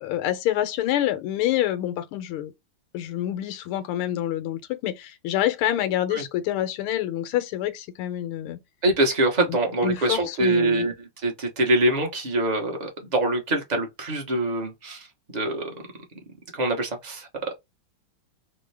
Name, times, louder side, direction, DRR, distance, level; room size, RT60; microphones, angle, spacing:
voice 1, 0.0-2.5 2.9-8.6 9.5-9.6 9.8-10.9, left 12 dB, 85° left, 1.5 m, -27 dB
voice 2, 8.8-15.1 15.3-15.8 16.5-17.5, right 2 dB, 35° right, 0.7 m, -24 dB
3.6 x 2.1 x 3.3 m
omnidirectional pair, 2.4 m